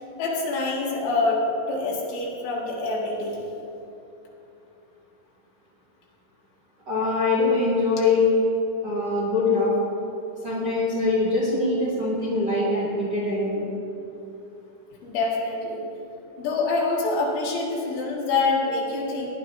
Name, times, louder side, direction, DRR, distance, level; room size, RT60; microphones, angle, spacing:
voice 1, 0.2-3.5 15.0-15.9 16.4-19.3, left 3 dB, 70° left, -3 dB, 3.8 m, -26 dB
voice 2, 6.8-8.3 8.8-9.7 10.4-13.7, left 3 dB, 40° right, -8 dB, 1.5 m, -23 dB
19.0 x 11.0 x 2.6 m, 2.8 s
omnidirectional pair, 6.0 m